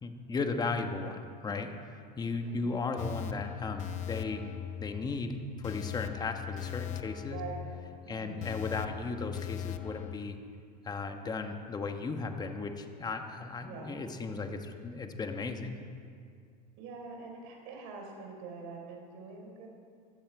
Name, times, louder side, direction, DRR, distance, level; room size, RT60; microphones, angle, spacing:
voice 1, 0.0-1.7 2.2-4.4 4.8-7.4 8.1-10.4 10.8-15.8, left 4 dB, 20° left, 6 dB, 1.3 m, -36 dB
voice 2, 2.4-2.8 7.3-7.7 8.0-8.4 13.7-13.9 16.8-19.7, right 4 dB, 65° right, 1 dB, 4.1 m, -44 dB
sound 1, 3.0-10.2, left 11 dB, 35° left, 0.6 m, -40 dB
15.5 x 13.0 x 4.8 m, 2.3 s
supercardioid pair, 115°, 20 cm